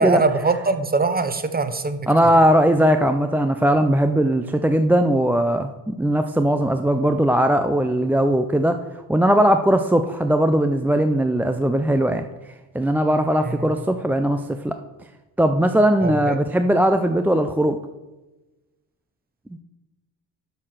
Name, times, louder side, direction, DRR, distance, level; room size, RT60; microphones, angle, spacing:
voice 1, 0.0-2.1 13.4-13.7 16.0-16.4, right 3 dB, 20° right, 10 dB, 0.8 m, -22 dB
voice 2, 2.1-8.8 9.1-12.3 12.7-14.7 15.4-17.8 19.5-19.6, right 1 dB, 5° right, 7 dB, 0.3 m, -19 dB
6.4 x 5.7 x 6.3 m, 1.1 s
supercardioid pair, 65°, 44 cm